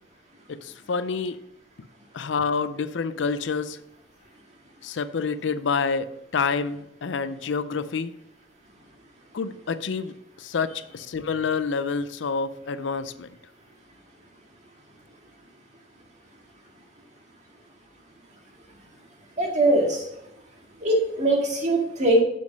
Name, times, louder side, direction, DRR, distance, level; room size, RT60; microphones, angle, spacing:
voice 1, 0.5-1.4 2.1-3.8 4.8-8.1 9.3-13.3, left 5 dB, 80° left, 14 dB, 0.5 m, -28 dB
voice 2, 19.4-20.0 20.8-22.2, right 1 dB, 40° right, 0 dB, 2.0 m, -21 dB
7.0 x 6.4 x 5.3 m, 0.80 s
head